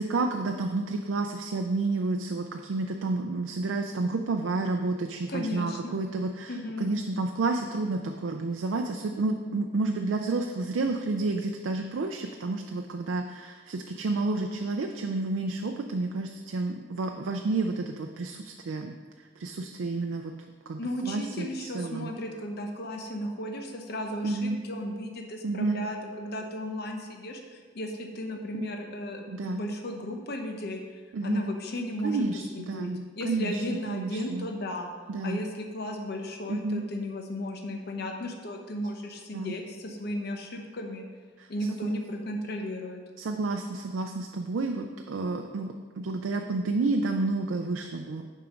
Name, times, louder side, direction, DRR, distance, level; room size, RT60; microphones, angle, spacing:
voice 1, 0.0-19.0 19.4-20.3 20.7-22.1 24.2-24.6 25.4-25.9 28.6-28.7 29.3-29.7 31.1-31.5 32.0-34.5 35.1-35.4 36.5-36.8 39.3-39.5 41.4-42.0 43.2-48.2, right 3 dB, 75° right, 4 dB, 0.4 m, -30 dB
voice 2, 5.3-6.0 6.5-6.9 20.8-30.8 31.2-32.2 32.5-32.9 33.2-34.9 35.2-41.0 41.5-43.0, left 1 dB, 55° left, 3 dB, 0.8 m, -35 dB
6.8 x 4.6 x 5.0 m, 1.6 s
head